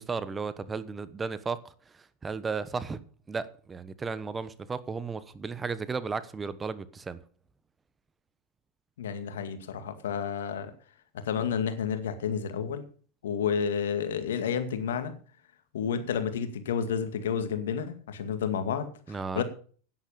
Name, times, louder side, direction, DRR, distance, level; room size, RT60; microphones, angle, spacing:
voice 1, 0.0-3.0 3.3-7.2 19.1-19.4, right 5 dB, 20° right, 1.1 m, -34 dB
voice 2, 9.0-10.7 11.1-12.8 13.2-15.1 15.7-19.4, left 7 dB, 80° left, 2.1 m, -30 dB
10.5 x 10.0 x 6.8 m
hypercardioid pair, 105°, 0 cm